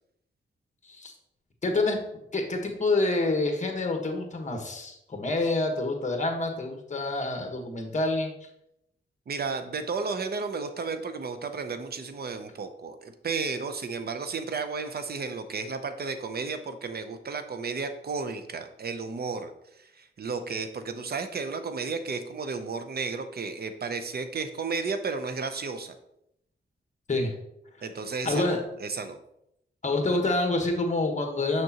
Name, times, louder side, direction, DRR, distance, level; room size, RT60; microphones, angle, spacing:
voice 1, 1.6-2.0 2.3-8.3 27.1-27.3 28.2-28.6 29.8-31.6, left 2 dB, 35° left, 3 dB, 1.2 m, -27 dB
voice 2, 9.3-19.5 19.8-25.9 27.8-29.2, right 4 dB, 50° right, 9 dB, 0.6 m, -33 dB
6.4 x 5.9 x 2.9 m, 0.79 s
wide cardioid pair, 105°, 20 cm